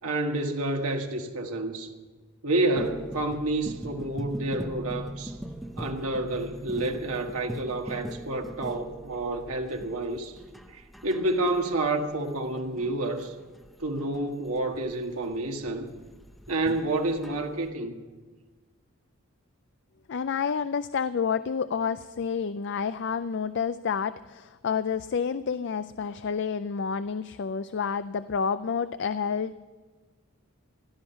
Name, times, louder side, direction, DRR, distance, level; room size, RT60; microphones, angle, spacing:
voice 1, 0.0-1.9 2.4-5.4 5.8-10.4 10.7-13.3 13.8-15.9 16.5-17.9, right 2 dB, 75° right, 1.7 m, -29 dB
sound 1, 2.8-17.7, equal, ahead, 0.7 m, -41 dB
voice 2, 20.1-29.6, left 6 dB, 50° left, 0.4 m, -29 dB
16.0 x 12.5 x 5.7 m
head